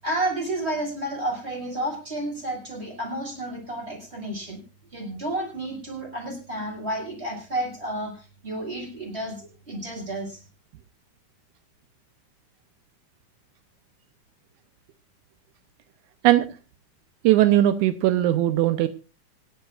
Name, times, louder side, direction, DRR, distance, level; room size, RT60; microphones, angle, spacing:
voice 1, 0.0-4.6 4.9-10.4, right 1 dB, 20° right, 0 dB, 6.7 m, -31 dB
voice 2, 17.2-18.9, right 13 dB, 85° right, 10 dB, 2.2 m, -19 dB
26.0 x 11.5 x 2.5 m, 0.31 s
omnidirectional pair, 3.5 m